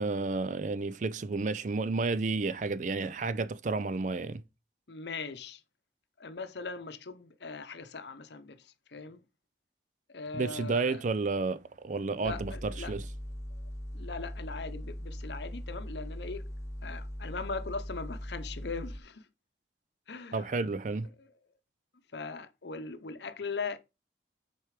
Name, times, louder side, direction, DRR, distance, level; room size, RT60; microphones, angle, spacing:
voice 1, 0.0-4.4 10.3-13.0 20.3-21.1, right 3 dB, 40° right, 0.4 m, -31 dB
voice 2, 4.9-5.6 6.2-9.2 10.1-11.0 12.2-12.9 13.9-16.4 16.8-19.3 20.1-20.5 21.2-21.3 22.1-23.8, left 4 dB, 70° left, 0.8 m, -40 dB
sound 1, 12.2-19.0, equal, 15° left, 0.9 m, -40 dB
6.5 x 4.6 x 4.8 m
head